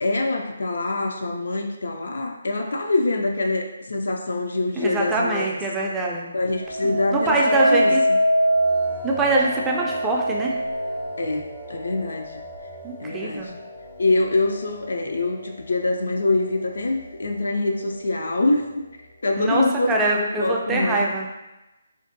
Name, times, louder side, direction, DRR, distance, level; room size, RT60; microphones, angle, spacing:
voice 1, 0.0-5.5 6.3-7.9 11.2-12.4 13.0-13.5 14.0-18.8 19.2-21.2, left 2 dB, 75° left, 3 dB, 0.4 m, -24 dB
voice 2, 4.8-6.3 6.8-8.0 9.0-10.6 12.8-13.5 19.4-21.3, right 2 dB, 10° right, -2 dB, 0.3 m, -24 dB
sound 1, 6.5-15.7 16.2-16.7, right 1 dB, 90° left, 1.3 m, -26 dB
2.5 x 2.2 x 2.5 m, 0.98 s
figure-of-eight pair, 150°, 0 cm